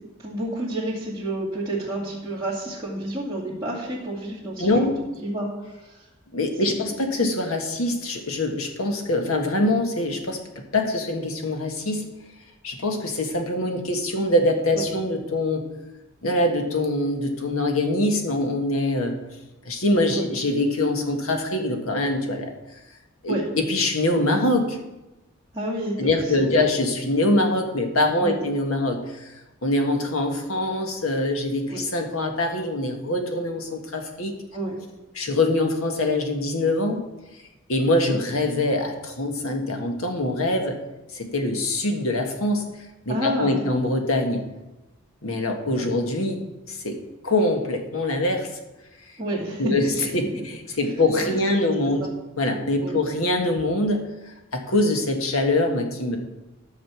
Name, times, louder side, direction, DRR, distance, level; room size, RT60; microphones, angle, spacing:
voice 1, 0.2-4.9 5.2-5.5 5.8-6.0 6.6-6.8 14.7-14.8 20.1-20.2 23.3-23.5 25.5-26.5 28.2-28.4 31.7-31.8 34.5-34.8 38.1-38.2 43.1-43.7 45.8-45.9 49.2-49.7 50.1-50.4 51.2-51.7 52.0-52.1 52.8-52.9, right 1 dB, 15° right, -9 dB, 2.3 m, -30 dB
voice 2, 4.6-4.9 6.3-12.1 12.6-15.7 16.2-19.2 19.6-22.5 23.2-24.8 26.0-29.3 29.6-34.3 35.1-37.0 37.7-40.8 41.1-42.7 43.0-44.4 45.2-46.4 46.7-48.5 49.6-52.1 52.4-54.1 54.5-56.2, left 1 dB, 85° left, 4 dB, 1.7 m, -24 dB
11.0 x 6.6 x 6.2 m, 1.0 s
head